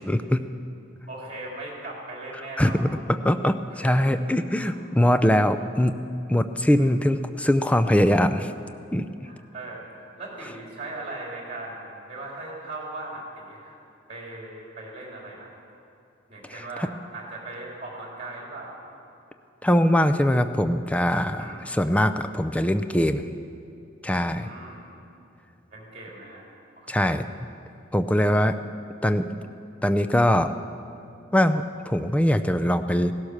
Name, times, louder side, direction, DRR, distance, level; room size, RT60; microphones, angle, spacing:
voice 1, 0.1-0.4 2.6-6.0 6.3-8.5 8.9-9.0 16.5-16.6 19.6-23.3 24.0-24.5 26.9-27.2 27.9-28.6 29.0-29.3 29.8-30.5 31.3-33.1, left 1 dB, 5° left, 10 dB, 0.5 m, -22 dB
voice 2, 1.1-2.8 3.7-4.1 4.6-4.8 6.8-6.9 9.2-9.8 10.2-13.8 14.1-15.5 16.3-16.9 17.1-18.7 21.4-21.7 24.3-24.8 25.7-26.4 26.8-27.2, right 2 dB, 30° right, -3 dB, 3.9 m, -39 dB
17.0 x 12.0 x 6.5 m, 2.7 s
head